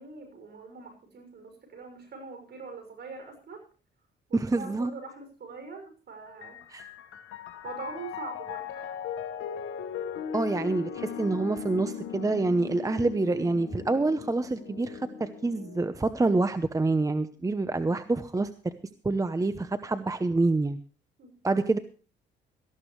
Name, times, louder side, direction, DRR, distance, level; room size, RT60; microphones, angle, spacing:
voice 1, 0.0-3.6 4.3-6.6 7.6-9.0 21.2-21.6, right 4 dB, 55° right, 6 dB, 6.3 m, -43 dB
voice 2, 4.3-4.9 6.7-6.9 10.3-18.5 19.0-20.8 21.4-21.8, right 3 dB, 15° right, 11 dB, 0.9 m, -27 dB
Piano, 6.3-15.9, left 7 dB, 85° left, 1.5 m, -38 dB
18.5 x 14.0 x 3.2 m, 0.36 s
cardioid pair, 90°, 20 cm